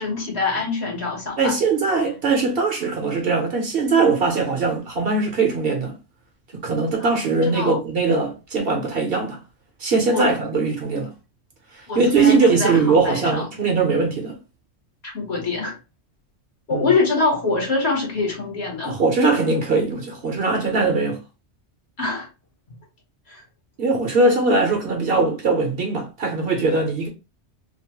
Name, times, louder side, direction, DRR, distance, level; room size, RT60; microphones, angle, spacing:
voice 1, 0.0-1.5 7.0-7.8 10.1-10.3 11.9-13.5 15.0-15.7 16.7-19.0 22.0-22.3 23.3-23.4, left 3 dB, 60° left, 1.4 m, -24 dB
voice 2, 1.4-5.9 6.6-9.4 9.8-11.1 11.9-14.3 16.7-16.9 18.8-21.2 23.8-27.1, right 3 dB, 55° right, 0.9 m, -20 dB
2.8 x 2.0 x 2.9 m
omnidirectional pair, 1.2 m